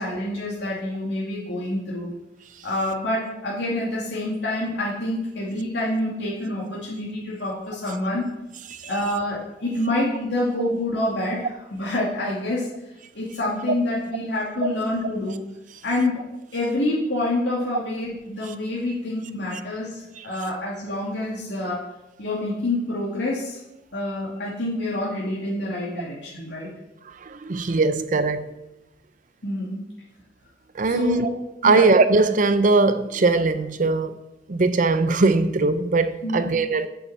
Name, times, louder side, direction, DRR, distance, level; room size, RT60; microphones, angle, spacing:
voice 1, 0.0-2.1 2.6-8.3 8.9-12.7 13.1-15.4 15.8-21.8 22.2-23.6 23.9-26.7 29.4-29.8 30.8-31.3 31.6-31.9 36.2-36.4, left 1 dB, 80° left, 2.5 m, -27 dB
voice 2, 27.2-28.5 30.7-31.3 31.6-34.1 34.5-36.9, right 3 dB, 45° right, 0.6 m, -20 dB
8.2 x 7.5 x 7.3 m
head